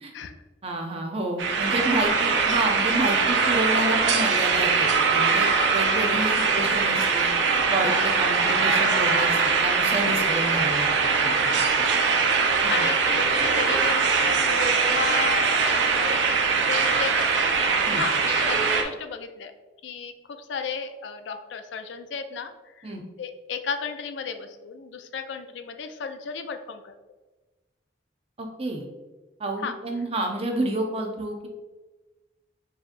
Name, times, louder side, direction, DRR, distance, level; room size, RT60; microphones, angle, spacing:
voice 1, 0.6-7.3 7.7-10.9 11.2-11.5 11.8-11.9 12.6-12.8 17.9-18.0 22.8-23.0 28.4-28.9 29.4-31.5, right 2 dB, 30° right, 2 dB, 0.6 m, -29 dB
sound 1, 1.4-18.8, right 5 dB, 75° right, 0.5 m, -22 dB
voice 2, 11.9-14.6 14.9-16.2 16.6-17.5 17.9-19.5 19.8-22.9 23.2-26.9 29.6-29.7, left 6 dB, 75° left, 8 dB, 0.4 m, -34 dB
4.7 x 3.0 x 2.5 m, 1.2 s
head